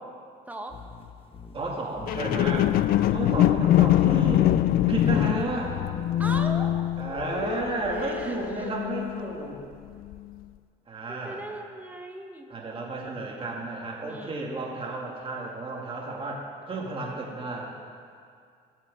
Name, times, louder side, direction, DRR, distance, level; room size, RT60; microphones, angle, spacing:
voice 1, 0.5-0.8 5.1-5.5 6.2-6.8 7.9-8.7 11.1-12.5 14.1-14.4, right 1 dB, 10° right, 3 dB, 1.0 m, -38 dB
sound 1, 0.7-6.7, left 6 dB, 35° left, 0.9 m, -49 dB
voice 2, 1.5-2.7 3.1-4.5 4.9-5.7 7.0-9.6 10.9-11.4 12.5-16.4 16.7-17.7, right 3 dB, 30° right, -2 dB, 2.1 m, -32 dB
sound 2, 2.1-9.5 10.1-10.2, left 13 dB, 60° left, 0.4 m, -24 dB
17.0 x 7.3 x 3.6 m, 2.2 s
cardioid pair, 110°, 17 cm